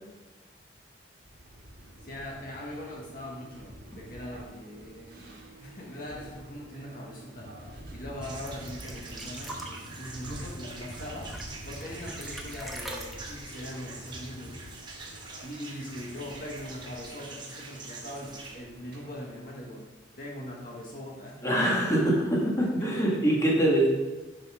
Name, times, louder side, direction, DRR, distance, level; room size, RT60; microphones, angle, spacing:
sound 1, 1.2-19.3, equal, 60° right, 1.4 m, -47 dB
voice 1, 2.0-11.3 11.6-14.6 15.4-19.9 20.2-21.5 22.8-23.2, left 1 dB, 50° left, -2 dB, 1.4 m, -41 dB
sound 2, 8.2-18.5, right 3 dB, 25° right, 1.2 m, -45 dB
sound 3, 8.5-14.9 15.2-15.3 15.6-16.3 17.1-17.2, right 1 dB, ahead, 0.9 m, -44 dB
voice 2, 21.4-23.9, right 1 dB, 15° left, -4 dB, 1.7 m, -24 dB
11.0 x 5.5 x 3.6 m, 1.2 s
head